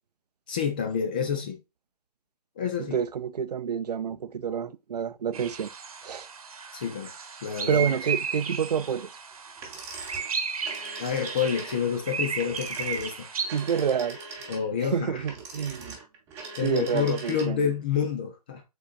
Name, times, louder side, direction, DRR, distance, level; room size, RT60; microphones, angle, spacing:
voice 1, 0.5-1.6 2.6-3.0 6.7-7.1 7.4-8.0 11.0-13.4 14.5-15.2 16.6-18.6, left 7 dB, 15° left, 0.3 m, -28 dB
voice 2, 2.9-5.7 6.0-6.3 7.7-9.1 13.5-14.2 14.8-16.0 16.6-17.6, right 7 dB, 80° right, 0.5 m, -28 dB
sound 1, 5.3-13.9, right 6 dB, 60° right, 1.0 m, -35 dB
sound 2, 9.6-17.7, right 3 dB, 15° right, 1.0 m, -42 dB
5.1 x 3.9 x 2.4 m
hypercardioid pair, 160°, 20 cm